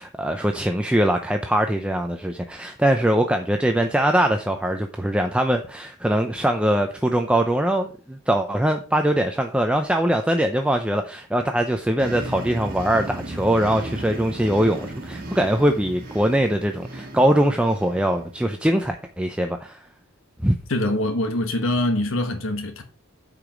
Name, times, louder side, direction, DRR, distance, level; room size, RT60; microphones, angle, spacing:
voice 1, 0.0-19.8 20.4-20.6, right 1 dB, 5° right, 0.5 m, -22 dB
sound 1, 12.0-18.4, right 1 dB, 40° right, 1.9 m, -35 dB
voice 2, 20.7-22.8, left 1 dB, 65° left, 1.1 m, -24 dB
8.9 x 5.0 x 6.1 m
head